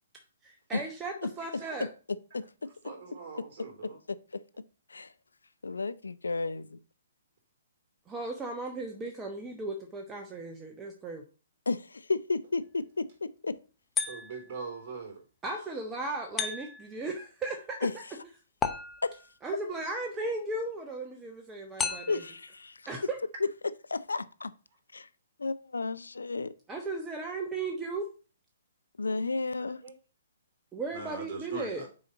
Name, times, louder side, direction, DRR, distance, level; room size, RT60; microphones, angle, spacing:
voice 1, 0.4-1.9 8.1-11.2 15.4-18.0 19.4-22.2 22.9-23.2 26.7-28.1 30.7-31.9, right 3 dB, 15° right, 1.0 m, -36 dB
voice 2, 1.4-1.7 2.8-4.0 14.0-15.2 15.5-15.7 29.6-29.9 30.9-31.9, right 4 dB, 45° right, 3.2 m, -42 dB
voice 3, 5.6-6.8 11.7-13.6 17.8-17.9 19.0-19.2 21.9-22.9 23.4-23.5 23.9-24.5 24.9-25.1 25.4-26.5 29.0-29.8, left 3 dB, 85° left, 0.5 m, -32 dB
sound 1, 14.0-14.6 16.4-17.0 18.6-19.4 21.8-22.4, left 6 dB, 15° left, 0.7 m, -34 dB
6.3 x 4.3 x 5.0 m
hypercardioid pair, 130°, 0 cm